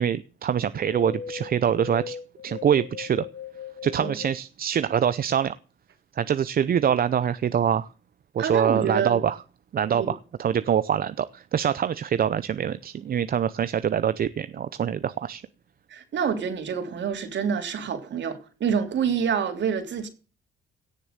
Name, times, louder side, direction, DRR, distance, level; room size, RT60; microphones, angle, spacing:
voice 1, 0.0-2.2 2.4-3.3 3.8-5.5 6.2-7.9 8.3-9.4 9.7-15.4, right 8 dB, 50° right, 0.7 m, -24 dB
sound 1, 0.6-4.3, left 7 dB, 60° left, 2.3 m, -38 dB
voice 2, 8.4-9.3 9.9-10.1 15.9-20.1, right 7 dB, 65° right, 3.4 m, -27 dB
17.0 x 6.7 x 6.7 m
cardioid pair, 90°, 20 cm